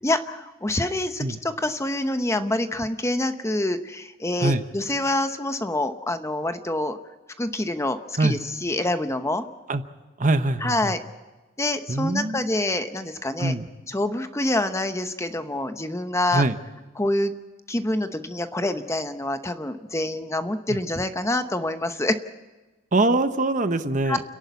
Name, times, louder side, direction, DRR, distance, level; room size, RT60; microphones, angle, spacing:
voice 1, 0.0-7.0 7.4-9.4 10.6-11.0 11.6-13.5 13.9-16.4 17.0-17.3 17.7-22.2 24.0-24.2, left 1 dB, 15° left, 9 dB, 0.9 m, -26 dB
voice 2, 10.2-10.9 11.9-12.5 13.4-13.7 16.3-16.6 20.7-20.8 22.9-24.2, right 2 dB, 40° right, 10 dB, 1.0 m, -23 dB
29.5 x 11.0 x 8.3 m, 1.2 s
head